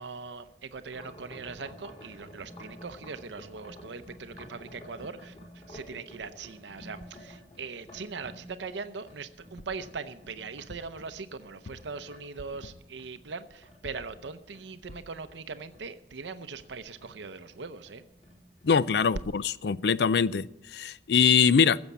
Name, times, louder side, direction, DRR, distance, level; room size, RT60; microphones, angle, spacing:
voice 1, 0.0-18.0, right 4 dB, 85° right, 11 dB, 0.7 m, -41 dB
sound 1, 0.9-12.2 12.5-15.9 16.2-16.7 17.0-17.2 17.4-17.6 17.9-18.8 19.0-19.2, equal, 40° left, 5.1 m, -50 dB
sound 2, 9.6-9.9 10.7-11.0 11.6-12.1 12.6-13.0 13.8-14.2 14.9-15.2 15.7-15.8 16.1-16.2, left 2 dB, 85° left, 1.0 m, -48 dB
voice 2, 18.6-21.8, left 6 dB, 65° left, 19 dB, 0.4 m, -23 dB
15.5 x 7.1 x 8.2 m, 0.85 s
head